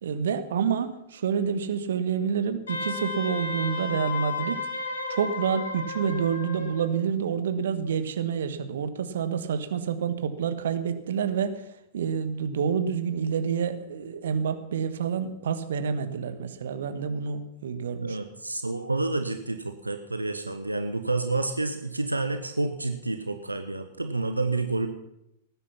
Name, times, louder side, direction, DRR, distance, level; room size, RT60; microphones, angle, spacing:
voice 1, 0.0-4.6 5.1-11.6 11.9-18.2, right 7 dB, 60° right, 11 dB, 1.2 m, -28 dB
Wind instrument woodwind instrument, 2.7-6.9, left 3 dB, 70° left, 2.8 m, -33 dB
voice 2, 18.0-24.9, right 2 dB, 85° right, 8 dB, 0.9 m, -29 dB
18.5 x 9.8 x 5.8 m, 0.82 s
figure-of-eight pair, 95°, 0 cm